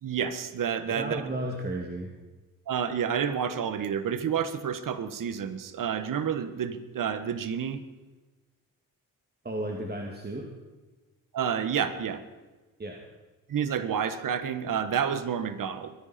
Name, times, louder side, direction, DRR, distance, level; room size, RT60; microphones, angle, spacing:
voice 1, 0.0-1.2 2.7-7.8 11.3-12.2 13.5-15.9, right 8 dB, 60° right, 12 dB, 1.4 m, -29 dB
voice 2, 0.8-2.1 9.4-10.5 12.8-13.0, right 1 dB, 25° right, 1 dB, 2.1 m, -33 dB
23.0 x 11.0 x 4.3 m, 1.2 s
supercardioid pair, 65°, 36 cm